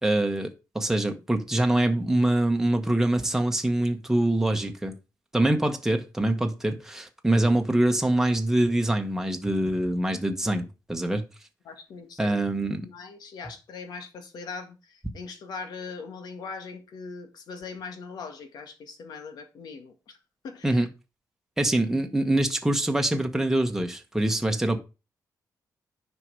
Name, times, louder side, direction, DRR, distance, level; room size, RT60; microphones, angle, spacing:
voice 1, 0.0-4.9 5.3-11.2 12.2-12.9 20.6-20.9 21.6-24.8, right 1 dB, 5° right, 1.3 m, -24 dB
voice 2, 11.7-12.4 12.8-20.2 20.4-20.9, left 4 dB, 75° left, 1.9 m, -40 dB
9.8 x 5.4 x 4.8 m
cardioid pair, 110°, 7 cm